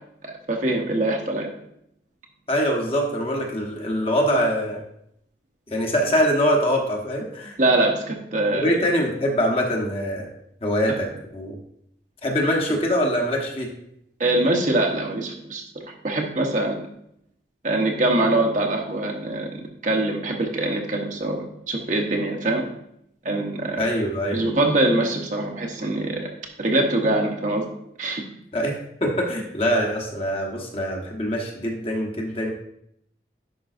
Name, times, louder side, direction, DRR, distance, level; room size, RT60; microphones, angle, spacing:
voice 1, 0.5-1.5 7.6-8.7 10.9-11.0 14.2-15.6 16.0-16.8 17.6-19.5 19.8-22.6 23.2-23.8 24.3-26.3 26.6-27.6 28.0-28.2, right 2 dB, 45° right, 1 dB, 1.0 m, -23 dB
voice 2, 2.5-4.8 5.7-7.6 8.5-10.3 10.6-11.6 12.2-13.7 23.8-24.4 28.5-32.5, equal, 30° left, 0 dB, 1.1 m, -23 dB
10.5 x 5.4 x 2.6 m, 0.75 s
head